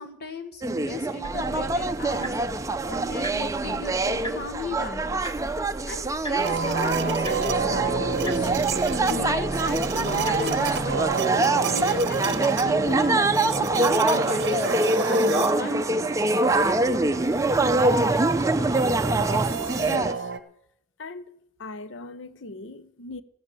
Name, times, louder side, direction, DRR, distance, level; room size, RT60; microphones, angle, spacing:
voice 1, 0.0-5.5 5.8-8.5 9.1-11.1 11.7-16.2, left 3 dB, 55° left, 1.5 m, -36 dB
sound 1, 0.6-20.1, right 2 dB, 15° right, 0.5 m, -24 dB
sound 2, 1.2-11.2, equal, 20° left, 1.0 m, -39 dB
sound 3, 6.4-20.4, right 5 dB, 60° right, 0.8 m, -31 dB
voice 2, 19.8-20.3 21.0-23.2, left 3 dB, 70° left, 0.7 m, -40 dB
13.5 x 9.7 x 6.8 m
head